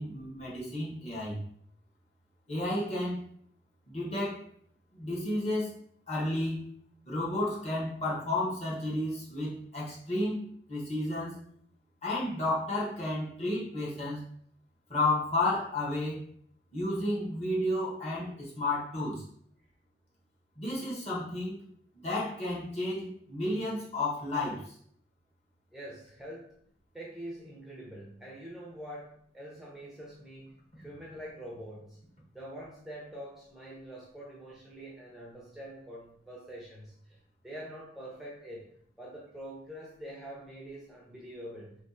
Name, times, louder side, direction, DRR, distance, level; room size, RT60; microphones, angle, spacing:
voice 1, 0.0-1.4 2.5-3.2 3.9-4.4 4.9-5.7 6.1-6.7 7.0-11.4 12.0-14.2 14.9-16.3 16.7-19.2 20.6-21.6 21.9-24.6, left 1 dB, 35° left, -5 dB, 1.4 m, -32 dB
voice 2, 25.7-26.5 26.9-32.0 32.3-37.2 37.4-38.7 39.0-41.8, right 1 dB, ahead, -4 dB, 0.6 m, -45 dB
3.3 x 2.9 x 4.2 m, 0.64 s
head